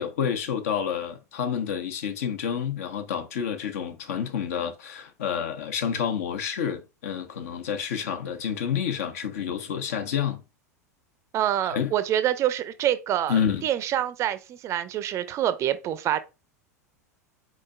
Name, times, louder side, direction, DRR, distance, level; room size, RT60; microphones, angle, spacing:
voice 1, 0.0-10.4 11.7-11.9 13.3-13.7, left 8 dB, 60° left, 0.9 m, -29 dB
voice 2, 11.3-16.2, right 11 dB, 35° right, 0.5 m, -26 dB
4.8 x 4.3 x 2.4 m
figure-of-eight pair, 85°, 9 cm